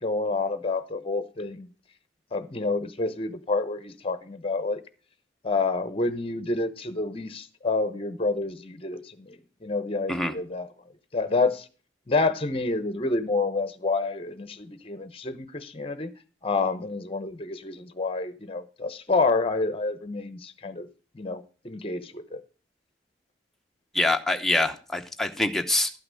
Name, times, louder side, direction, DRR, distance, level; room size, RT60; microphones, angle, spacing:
voice 1, 0.0-1.7 2.3-4.8 5.4-10.7 11.1-11.7 12.1-16.1 16.4-20.9 21.1-22.4, left 3 dB, 30° left, 0.8 m, -28 dB
voice 2, 23.9-25.9, left 2 dB, ahead, 0.8 m, -25 dB
12.0 x 5.8 x 6.4 m
head